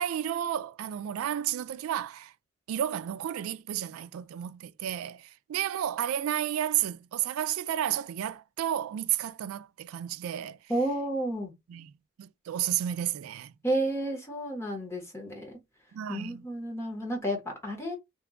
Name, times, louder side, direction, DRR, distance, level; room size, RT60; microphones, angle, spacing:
voice 1, 0.0-2.3 2.7-10.6 11.7-11.9 12.2-13.5 15.9-16.5, right 11 dB, 90° right, 0.3 m, -32 dB
voice 2, 10.7-11.5 13.6-15.6 16.1-18.0, right 1 dB, 10° left, 1.0 m, -31 dB
2.9 x 2.3 x 3.6 m
head